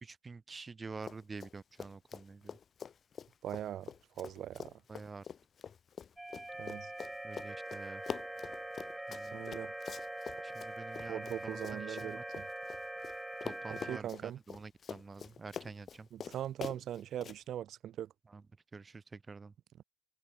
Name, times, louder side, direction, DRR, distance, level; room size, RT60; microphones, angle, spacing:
voice 1, 0.0-2.6 4.9-5.2 7.2-8.0 9.1-9.4 10.4-12.2 13.4-16.1 18.3-18.4 18.7-19.5, right 4 dB, 30° right, 1.2 m, -48 dB
Run, 1.0-1.5 1.8-13.1 13.4-17.4, left 7 dB, 50° left, 2.1 m, -45 dB
voice 2, 3.4-3.9 4.2-4.7 6.6-6.9 9.3-9.7 11.1-12.5 13.7-14.4 16.1-18.1, right 11 dB, 70° right, 0.4 m, -40 dB
sound 1, 6.2-14.0, right 1 dB, 10° right, 0.5 m, -43 dB
cardioid pair, 90°, 0 cm